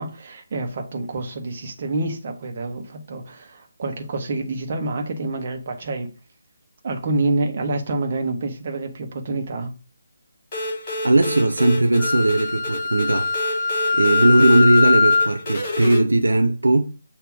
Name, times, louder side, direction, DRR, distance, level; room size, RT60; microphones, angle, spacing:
voice 1, 0.0-6.1 6.8-9.7, right 2 dB, 40° right, 1.2 m, -27 dB
sound 1, 10.5-16.0, left 1 dB, 25° left, 3.2 m, -30 dB
voice 2, 11.0-13.3 13.9-16.9, right 2 dB, 70° right, 0.6 m, -18 dB
Wind instrument woodwind instrument, 12.0-15.4, left 4 dB, 15° right, 1.2 m, -21 dB
6.9 x 2.9 x 4.8 m
figure-of-eight pair, 145°, 0 cm